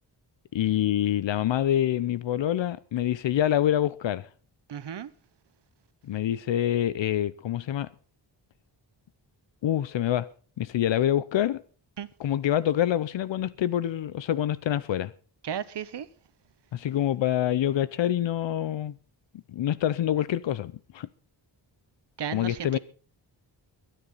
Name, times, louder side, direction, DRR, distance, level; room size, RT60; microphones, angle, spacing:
voice 1, 0.5-4.3 6.0-7.9 9.6-10.3 10.6-11.6 12.2-15.1 16.7-19.0 19.5-21.1 22.3-22.8, left 11 dB, 80° left, 0.7 m, -26 dB
voice 2, 4.7-5.1 12.0-12.1 15.4-16.1 22.2-22.8, right 8 dB, 65° right, 1.2 m, -34 dB
22.5 x 10.0 x 4.0 m
wide cardioid pair, 135°, 44 cm